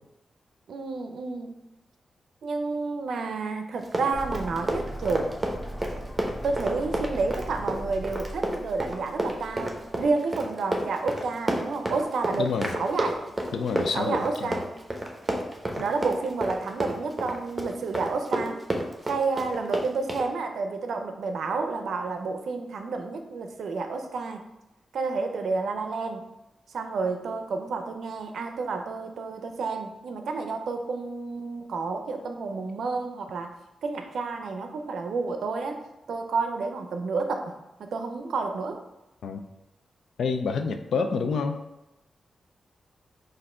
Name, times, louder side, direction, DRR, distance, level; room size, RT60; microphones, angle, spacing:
voice 1, 0.7-1.5 2.4-5.3 6.4-12.5 12.7-13.3 13.8-14.7 15.8-18.6 19.1-24.4 24.9-26.3 26.7-33.5 33.8-35.8 36.1-37.5 37.8-38.8, right 4 dB, 80° right, 6 dB, 0.5 m, -30 dB
Run, 3.8-20.3, right 1 dB, 25° right, 0.8 m, -30 dB
sound 1, 4.1-10.1, equal, 15° left, 1.0 m, -39 dB
voice 2, 12.4-12.7 13.5-14.6 39.2-39.4 40.2-41.6, left 5 dB, 80° left, 7 dB, 0.4 m, -28 dB
4.2 x 2.6 x 4.3 m, 0.94 s
cardioid pair, 65°, 0 cm